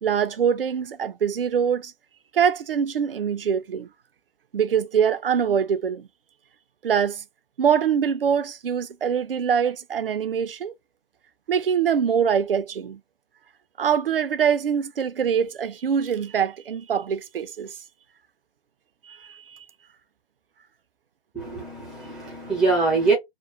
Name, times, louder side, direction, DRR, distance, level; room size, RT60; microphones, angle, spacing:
voice 1, 0.0-1.9 2.3-3.9 4.5-6.1 6.8-7.2 7.6-10.7 11.5-13.0 13.8-17.7 19.1-19.7, right 7 dB, 65° right, 0.5 m, -24 dB
voice 2, 21.3-23.1, right 3 dB, ahead, 0.6 m, -23 dB
2.9 x 2.0 x 2.6 m
figure-of-eight pair, 125°, 31 cm